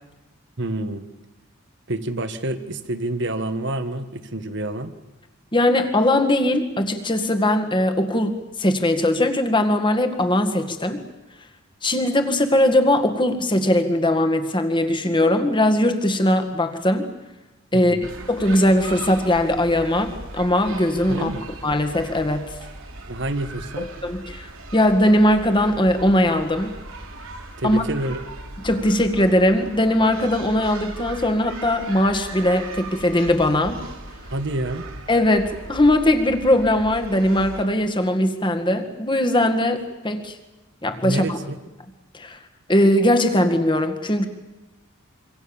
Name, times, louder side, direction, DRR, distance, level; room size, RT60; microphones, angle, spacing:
voice 1, 0.6-1.0 1.9-4.9 17.7-18.1 21.1-21.4 23.1-23.9 27.6-28.2 34.3-34.9 41.0-41.6, right 1 dB, 55° right, 10 dB, 1.6 m, -28 dB
voice 2, 5.5-11.0 11.8-17.1 17.7-18.0 18.3-21.3 21.6-22.6 24.0-26.7 27.6-27.8 28.6-33.8 35.1-40.4 40.8-41.4 42.1-42.4 42.7-44.3, left 1 dB, 20° left, 6 dB, 2.0 m, -20 dB
sound 1, 18.0-37.6, right 2 dB, 75° right, 4.2 m, -38 dB
26.0 x 25.0 x 7.3 m, 1.0 s
head